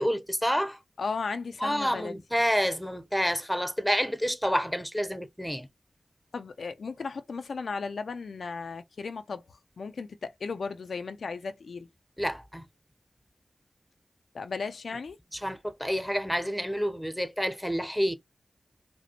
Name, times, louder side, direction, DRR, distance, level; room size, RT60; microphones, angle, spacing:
voice 1, 0.0-0.8 1.6-5.7 12.2-12.6 15.3-18.1, equal, ahead, 0.7 m, -28 dB
voice 2, 1.0-2.2 6.3-11.9 14.3-15.2, left 4 dB, 90° left, 0.4 m, -35 dB
5.1 x 2.0 x 2.9 m
cardioid pair, 45°, 0 cm